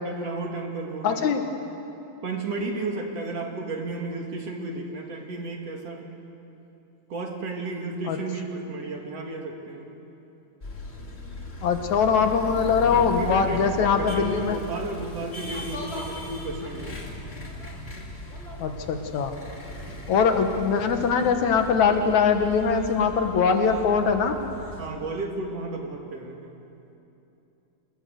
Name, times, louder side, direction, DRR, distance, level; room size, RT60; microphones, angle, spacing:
voice 1, 0.0-1.3 2.2-6.2 7.1-9.9 12.1-12.4 12.9-16.9 19.8-20.0 24.8-26.5, right 3 dB, 55° right, 2 dB, 3.1 m, -33 dB
voice 2, 1.0-1.4 8.1-8.2 11.6-14.6 18.6-19.3 20.1-24.4, left 6 dB, 70° left, 6 dB, 2.6 m, -22 dB
sound 1, 10.6-24.9, left 1 dB, 20° left, 2.5 m, -38 dB
27.0 x 20.0 x 7.9 m, 2.9 s
omnidirectional pair, 3.6 m